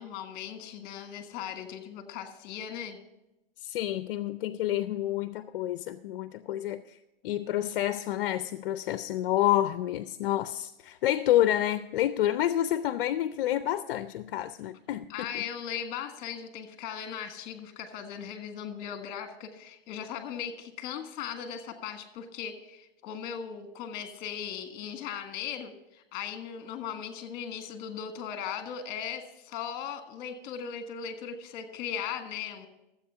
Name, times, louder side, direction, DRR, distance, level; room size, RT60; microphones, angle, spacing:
voice 1, 0.0-3.0 15.1-32.7, left 8 dB, 30° left, 7 dB, 1.6 m, -38 dB
voice 2, 3.6-7.0 7.2-15.4, left 13 dB, 65° left, 12 dB, 0.5 m, -29 dB
13.0 x 7.8 x 5.6 m, 0.92 s
supercardioid pair, 155°, 30 cm